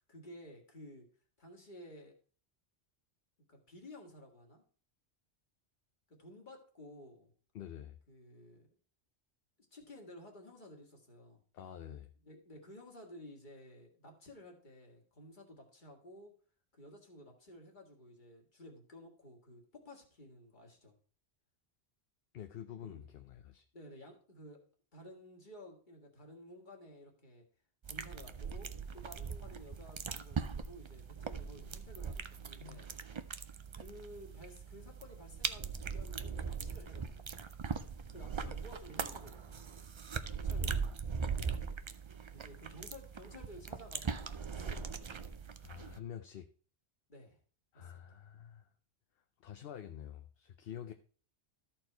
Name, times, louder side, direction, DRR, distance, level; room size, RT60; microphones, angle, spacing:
voice 1, 0.1-1.1 1.4-2.2 3.5-4.6 6.1-7.3 8.1-8.7 9.7-11.4 12.2-16.3 16.7-20.9 22.8-23.1 23.7-24.6 24.9-27.4 27.8-32.9 33.7-37.5 37.8-39.7 40.3-41.2 42.3-45.0 47.1-47.4 47.7-48.2, left 1 dB, 45° left, 2.0 m, -54 dB
voice 2, 7.5-8.0 11.5-12.1 22.3-23.6 32.6-32.9 45.6-46.5 47.7-48.7 49.4-50.9, left 10 dB, 65° left, 0.8 m, -47 dB
sound 1, 27.8-46.0, right 5 dB, 45° right, 0.4 m, -40 dB
13.5 x 4.5 x 4.5 m
omnidirectional pair, 1.1 m